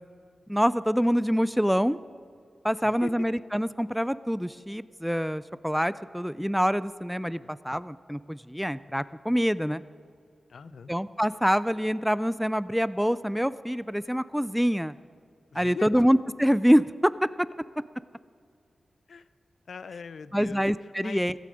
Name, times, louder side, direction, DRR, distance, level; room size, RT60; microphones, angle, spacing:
voice 1, 0.5-2.0 2.6-9.8 10.9-14.9 15.6-17.1 20.3-21.3, equal, ahead, 17 dB, 0.4 m, -25 dB
voice 2, 10.5-10.9 15.5-16.0 19.1-19.3 19.7-20.6 21.0-21.2, left 5 dB, 80° left, 15 dB, 0.5 m, -40 dB
16.5 x 16.0 x 4.9 m, 2.3 s
wide cardioid pair, 100°, 0 cm